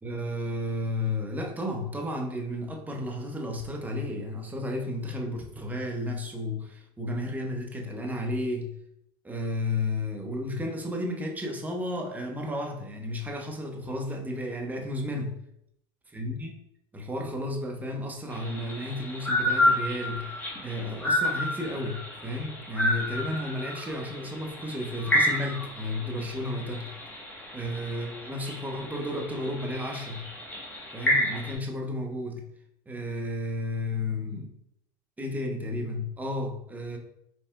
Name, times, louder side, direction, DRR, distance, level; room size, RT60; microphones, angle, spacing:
voice 1, 0.0-8.8 9.2-15.4 16.1-16.6 16.9-26.9 27.5-30.3 30.9-32.4 32.9-34.5 35.2-37.0, left 1 dB, 15° right, 1 dB, 0.9 m, -33 dB
sound 1, 18.3-31.5, left 1 dB, 15° left, 1.3 m, -30 dB
4.1 x 3.4 x 2.3 m, 0.74 s
hypercardioid pair, 85°, 12 cm